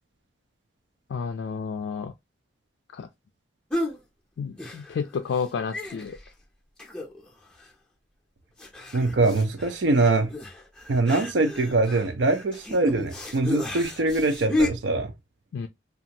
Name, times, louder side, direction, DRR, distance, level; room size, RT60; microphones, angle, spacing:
voice 1, 1.1-2.1 2.9-3.1 4.4-6.2 15.5-15.7, left 6 dB, 80° left, 0.3 m, -31 dB
sound 1, 3.7-4.0 4.6-5.1 5.4-5.5 5.7-6.3 6.8-7.3 7.6-7.7 8.6-14.7, left 2 dB, 5° left, 0.5 m, -32 dB
voice 2, 8.9-10.3 10.9-15.1, right 2 dB, 75° right, 0.5 m, -23 dB
2.6 x 2.4 x 2.8 m
head